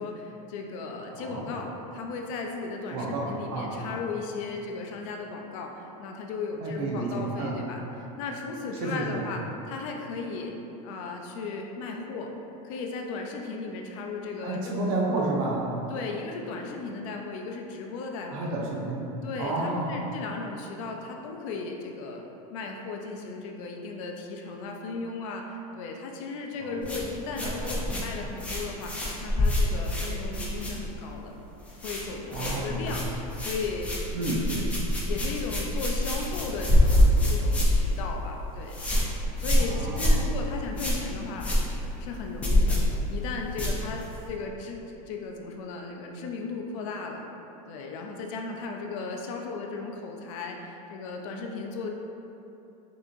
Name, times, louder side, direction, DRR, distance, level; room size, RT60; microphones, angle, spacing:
voice 1, 0.0-9.4 9.7-10.5 10.8-12.3 12.6-14.8 15.9-18.5 19.2-22.2 22.5-31.3 31.8-33.9 34.5-38.8 39.4-41.5 42.0-47.2 47.7-51.9, left 4 dB, 60° left, 2 dB, 0.5 m, -36 dB
voice 2, 1.1-1.4 2.9-3.3 3.5-3.7 6.6-7.6 8.8-9.2 14.4-15.7 18.3-19.1 19.4-19.9 26.6-26.8 27.4-27.7 32.3-32.9 34.1-34.4 39.5-40.1, right 2 dB, 65° right, -3 dB, 0.9 m, -31 dB
sound 1, 26.8-31.2 31.4-32.0 32.3-44.3, left 1 dB, 5° left, 0.5 m, -26 dB
6.0 x 2.8 x 2.5 m, 3.0 s
supercardioid pair, 165°, 20 cm